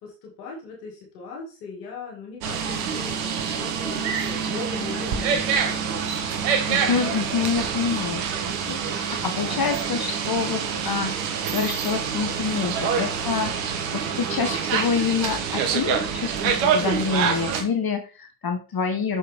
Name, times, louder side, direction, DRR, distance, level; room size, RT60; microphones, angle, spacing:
voice 1, 0.0-6.2, left 4 dB, 85° left, -1 dB, 2.4 m, -38 dB
sound 1, 2.4-17.6, right 6 dB, 85° right, 1.1 m, -26 dB
voice 2, 6.7-8.3 8.6-19.2, left 6 dB, 45° left, 5 dB, 1.5 m, -27 dB
6.3 x 5.4 x 3.6 m, 0.33 s
hypercardioid pair, 40°, 49 cm